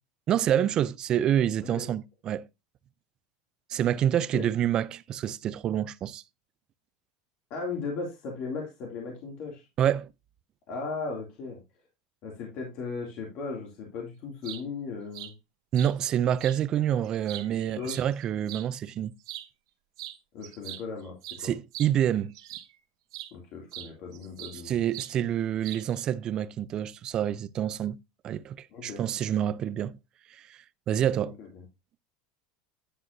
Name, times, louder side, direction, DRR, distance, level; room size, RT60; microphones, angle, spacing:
voice 1, 0.3-2.5 3.7-6.2 9.8-10.1 15.7-19.1 21.4-22.3 24.6-28.0 28.2-30.0 30.4-30.5 30.9-31.3, right 10 dB, 30° right, 0.4 m, -27 dB
voice 2, 7.5-9.7 10.7-11.6 12.2-15.3 17.5-18.0 20.3-21.1 21.4-21.5 23.3-24.8 28.7-29.0 31.4-31.6, left 4 dB, 45° left, 2.6 m, -37 dB
sound 1, 14.2-14.6 15.1-15.3 15.7-15.9 16.4-16.6 17.0-18.7 19.2-19.5 20.0-20.2 20.4-22.8 23.1-23.3 23.7-24.6 24.9-25.1 25.6-26.0, right 14 dB, 85° right, 0.9 m, -41 dB
10.0 x 7.4 x 2.7 m
supercardioid pair, 155°, 2 cm